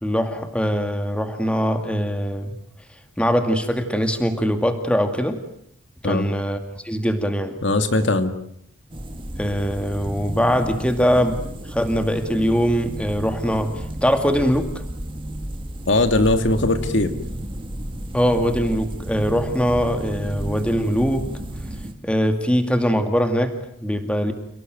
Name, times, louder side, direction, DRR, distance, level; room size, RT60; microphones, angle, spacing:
voice 1, 0.0-2.5 3.2-5.4 6.0-6.6 6.8-7.6 9.4-11.4 11.7-14.7 18.1-21.3 22.0-24.3, equal, 5° left, 7 dB, 2.3 m, -22 dB
voice 2, 7.6-8.3 15.9-17.1, left 2 dB, 60° left, 8 dB, 2.1 m, -19 dB
sound 1, 8.9-21.9, right 1 dB, 25° right, 2.2 m, -32 dB
30.0 x 18.0 x 9.3 m, 0.71 s
head